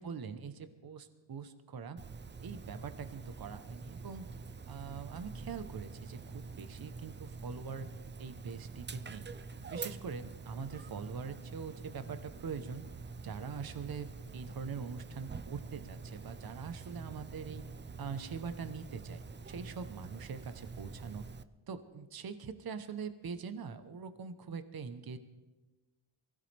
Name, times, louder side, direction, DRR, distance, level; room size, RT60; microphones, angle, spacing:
voice 1, 0.0-2.0 2.4-4.2 4.7-12.8 13.2-17.6 18.0-21.3 21.7-25.2, right 6 dB, 50° right, 10 dB, 1.0 m, -43 dB
Dog, 2.0-21.4, right 4 dB, 25° right, 0.4 m, -46 dB
23.5 x 16.0 x 3.4 m, 1.1 s
wide cardioid pair, 120°, 47 cm